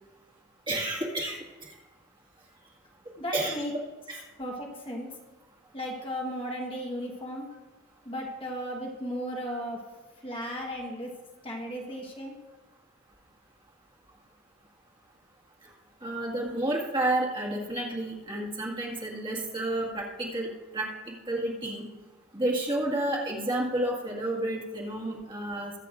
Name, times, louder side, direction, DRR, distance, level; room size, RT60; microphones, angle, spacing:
voice 1, 0.7-1.4 3.3-3.5 4.1-4.2 9.5-9.6 16.0-20.5 20.7-21.8 22.3-25.7, right 1 dB, 25° right, -3 dB, 1.8 m, -30 dB
voice 2, 3.2-3.7 4.4-5.1 5.7-7.5 8.0-9.8 10.2-11.1 11.4-12.3, equal, 25° left, -1 dB, 1.3 m, -35 dB
22.5 x 8.3 x 2.5 m, 1.2 s
head